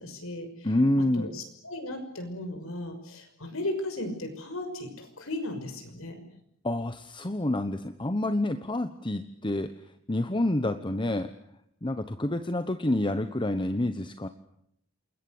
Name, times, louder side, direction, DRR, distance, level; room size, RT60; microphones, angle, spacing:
voice 1, 0.0-0.7 1.2-6.2, left 1 dB, 70° left, 6 dB, 6.0 m, -36 dB
voice 2, 0.6-1.3 6.6-9.7 10.1-11.3 11.8-14.3, left 1 dB, 20° left, 9 dB, 1.0 m, -28 dB
28.5 x 22.0 x 7.9 m, 0.74 s
head